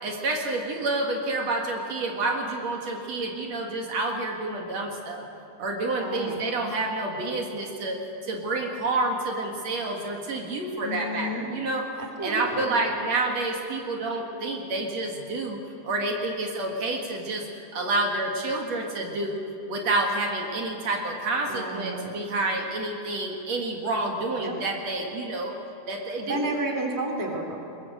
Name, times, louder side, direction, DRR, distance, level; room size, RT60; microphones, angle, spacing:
voice 1, 0.0-5.3 5.6-11.9 12.2-15.6 15.8-17.5 17.7-19.4 19.7-25.5 25.9-26.4, right 2 dB, 60° right, 2 dB, 3.0 m, -29 dB
voice 2, 5.9-6.4 10.8-11.5 12.0-12.8 21.5-22.1 24.4-24.6 26.2-27.6, right 1 dB, 5° right, 2 dB, 2.4 m, -31 dB
21.5 x 21.0 x 7.8 m, 2.9 s
omnidirectional pair, 3.4 m